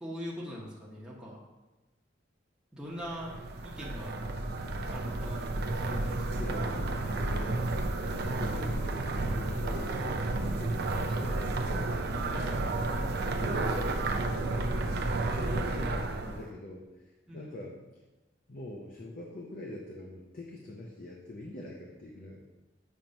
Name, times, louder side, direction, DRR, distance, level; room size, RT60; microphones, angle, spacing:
voice 1, 0.0-1.4 2.7-3.3 3.6-4.2 4.9-6.4 12.3-12.6 17.3-17.7, equal, 5° right, -6 dB, 1.0 m, -42 dB
sound 1, 3.0-16.5, right 2 dB, 60° right, 0.5 m, -31 dB
voice 2, 6.4-7.5 8.2-11.9 13.2-17.8 18.5-22.4, left 1 dB, 50° left, -1 dB, 0.7 m, -44 dB
7.2 x 3.0 x 5.2 m, 1.1 s
head